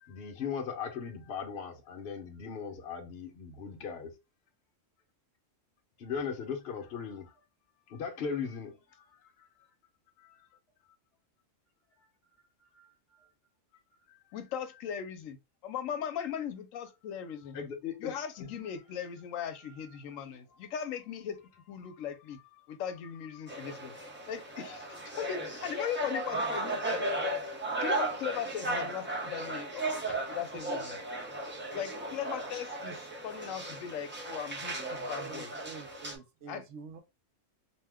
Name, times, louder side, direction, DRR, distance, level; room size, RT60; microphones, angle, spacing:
voice 1, 0.0-4.1 6.0-7.3 7.9-8.8 10.2-10.3 12.7-13.3 17.5-18.1 18.4-18.5 19.6-19.7 30.1-30.2 34.7-35.1 35.7-36.0, left 6 dB, 55° left, 0.8 m, -39 dB
voice 2, 14.3-15.4 15.6-17.6 18.0-21.4 21.7-22.4 22.7-23.9 24.3-27.0 27.8-29.9 30.3-31.0 31.7-35.5 36.5-36.6, left 8 dB, 85° left, 1.0 m, -38 dB
sound 1, 23.5-36.1, right 1 dB, 15° right, 0.4 m, -36 dB
voice 3, 35.1-37.0, right 6 dB, 70° right, 0.8 m, -47 dB
2.7 x 2.2 x 3.4 m
omnidirectional pair, 1.3 m